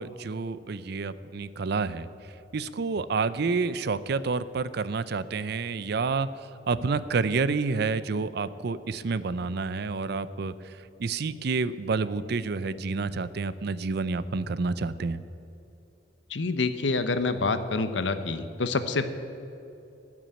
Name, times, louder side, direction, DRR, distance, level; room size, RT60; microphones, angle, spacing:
voice 1, 0.0-15.2, right 4 dB, 60° right, 15 dB, 0.5 m, -29 dB
voice 2, 16.3-19.1, left 3 dB, 80° left, 10 dB, 0.8 m, -27 dB
16.5 x 6.1 x 8.8 m, 2.8 s
head